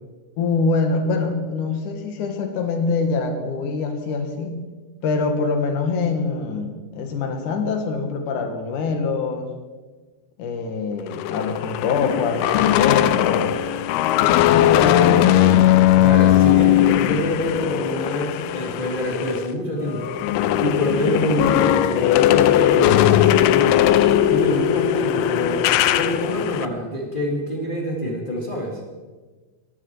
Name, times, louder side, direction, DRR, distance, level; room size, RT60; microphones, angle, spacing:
voice 1, 0.4-4.6 5.0-9.5 10.4-13.6 14.4-15.8, left 4 dB, 55° left, 5 dB, 2.5 m, -24 dB
sound 1, 11.1-19.5 19.8-26.7, left 12 dB, 85° left, 2.3 m, -18 dB
voice 2, 15.9-20.1 20.6-24.0 24.3-28.8, equal, 20° left, -1 dB, 1.3 m, -26 dB
23.5 x 11.0 x 4.7 m, 1.3 s
omnidirectional pair, 5.1 m